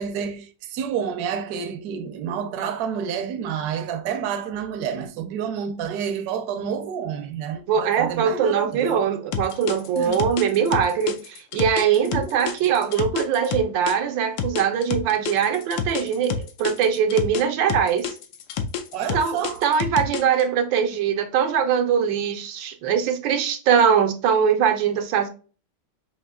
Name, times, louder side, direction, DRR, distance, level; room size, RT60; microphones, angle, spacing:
voice 1, 0.0-9.1 10.0-10.3 12.0-12.5 18.9-19.6, right 7 dB, 65° right, 1.0 m, -29 dB
voice 2, 7.7-18.1 19.1-25.3, right 7 dB, 85° right, 1.4 m, -22 dB
sound 1, 9.3-13.9 14.4-17.4 17.7-20.4, left 7 dB, 80° left, 1.3 m, -28 dB
5.7 x 2.7 x 2.2 m
omnidirectional pair, 2.0 m